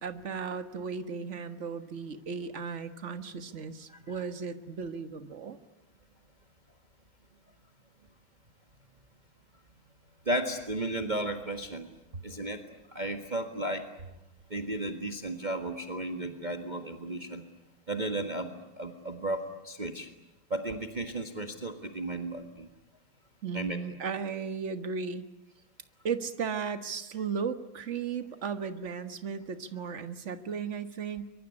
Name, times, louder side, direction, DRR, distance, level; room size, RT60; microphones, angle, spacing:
voice 1, 0.0-5.6 23.4-25.2 26.0-31.3, right 6 dB, 40° right, 10 dB, 1.6 m, -35 dB
voice 2, 3.9-4.2 10.2-11.9 12.2-13.9 14.5-17.4 17.9-20.1 20.5-22.7 23.5-23.8, right 1 dB, 25° right, 5 dB, 1.6 m, -34 dB
24.0 x 23.5 x 9.8 m, 0.87 s
omnidirectional pair, 2.2 m